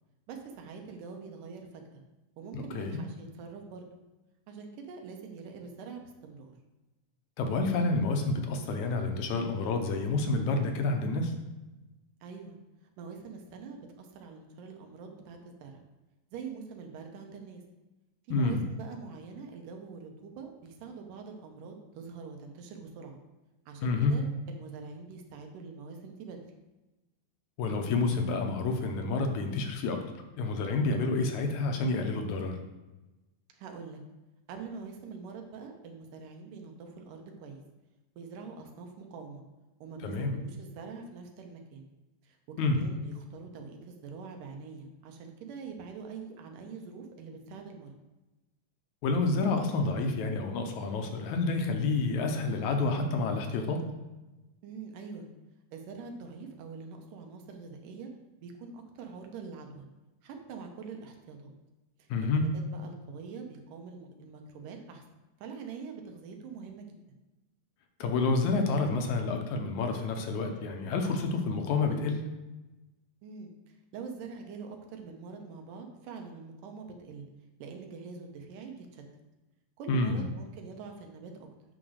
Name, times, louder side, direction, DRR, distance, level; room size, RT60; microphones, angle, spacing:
voice 1, 0.3-2.0 2.4-3.9 4.5-6.5 12.2-12.6 13.0-15.8 16.3-17.6 18.3-23.2 23.7-26.4 33.5-34.0 34.5-37.6 38.2-39.4 39.8-41.9 42.2-47.9 54.6-55.3 55.7-58.1 58.4-59.9 60.2-61.5 62.0-65.0 65.4-67.0 73.2-77.3 77.6-79.0 79.8-81.5, right 5 dB, 85° right, 3 dB, 2.6 m, -44 dB
voice 2, 2.5-3.0 7.4-11.3 18.3-18.6 23.8-24.2 27.6-30.0 30.4-32.5 40.0-40.3 42.6-42.8 49.0-53.8 62.1-62.5 68.0-72.2 79.9-80.3, left 3 dB, 75° left, 4 dB, 2.1 m, -29 dB
8.9 x 4.0 x 6.3 m, 1.1 s
omnidirectional pair, 3.7 m